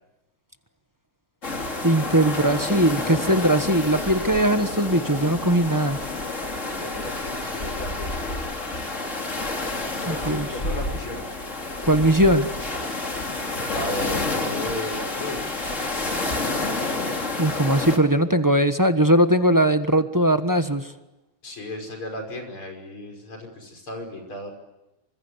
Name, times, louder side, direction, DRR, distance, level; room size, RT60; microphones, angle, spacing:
sound 1, 1.4-18.0, left 2 dB, 35° left, 3.2 m, -29 dB
voice 1, 1.8-6.0 10.1-10.5 11.8-12.5 17.4-20.9, right 1 dB, 15° right, 8 dB, 0.8 m, -20 dB
voice 2, 6.8-8.5 10.0-11.3 13.7-15.6 21.4-24.5, left 1 dB, 75° left, 3 dB, 6.4 m, -35 dB
28.0 x 25.5 x 8.1 m, 0.97 s
omnidirectional pair, 2.3 m